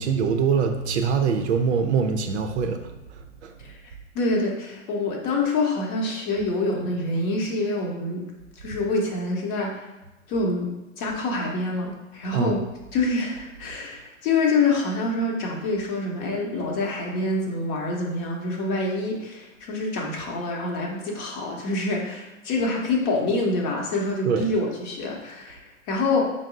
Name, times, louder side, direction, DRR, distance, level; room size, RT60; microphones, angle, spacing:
voice 1, 0.0-2.8 3.1-3.5 12.3-12.6 24.2-24.5, right 6 dB, 60° right, 5 dB, 0.5 m, -24 dB
voice 2, 4.1-8.2 8.6-9.7 10.3-10.7 11.0-12.6 12.9-26.3, left 2 dB, 35° left, 0 dB, 0.8 m, -26 dB
5.1 x 2.0 x 3.7 m, 1.0 s
figure-of-eight pair, 100°, 39 cm